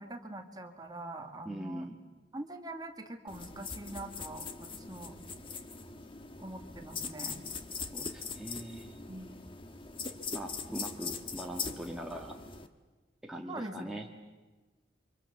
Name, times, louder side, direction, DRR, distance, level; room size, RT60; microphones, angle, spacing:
voice 1, 0.0-1.9 2.3-5.2 6.4-7.4 9.1-9.3 13.5-13.9, right 1 dB, 20° right, 4 dB, 2.2 m, -43 dB
voice 2, 1.4-2.0 7.9-9.1 10.3-12.4 13.2-14.1, right 1 dB, 5° right, 0 dB, 1.8 m, -41 dB
sound 1, 3.3-12.7, left 5 dB, 30° left, 1.5 m, -41 dB
30.0 x 25.5 x 7.1 m, 1.3 s
head